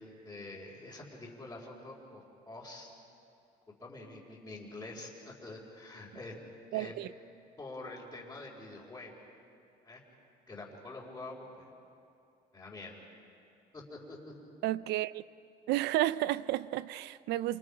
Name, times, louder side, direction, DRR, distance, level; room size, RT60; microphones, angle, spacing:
voice 1, 0.0-2.2 2.5-2.9 3.8-6.3 6.7-6.9 7.6-9.1 9.8-10.0 10.5-11.7 12.5-12.9 13.7-14.3, left 2 dB, 15° left, 4.4 m, -46 dB
voice 2, 6.7-7.1 14.6-15.2 15.7-17.6, right 15 dB, 90° right, 0.6 m, -31 dB
29.0 x 27.5 x 5.0 m
cardioid pair, 110°, 17 cm